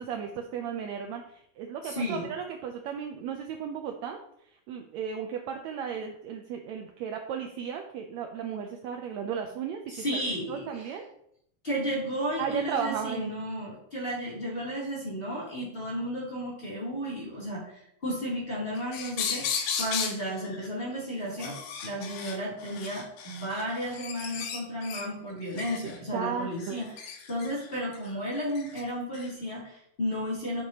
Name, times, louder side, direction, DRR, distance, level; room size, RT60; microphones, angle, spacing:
voice 1, 0.0-4.2 4.7-10.2 10.5-11.0 12.4-13.3 26.1-26.8, right 7 dB, 75° right, 3 dB, 1.7 m, -35 dB
voice 2, 1.8-2.3 9.9-10.9 11.6-26.9 27.3-30.6, equal, 20° left, -7 dB, 2.7 m, -33 dB
sound 1, 18.8-20.2 20.4-20.7 21.3-25.0 25.5-26.0 26.6-28.8 29.1-29.3, left 6 dB, 85° left, 2.5 m, -35 dB
8.2 x 6.9 x 2.9 m, 0.71 s
omnidirectional pair, 3.6 m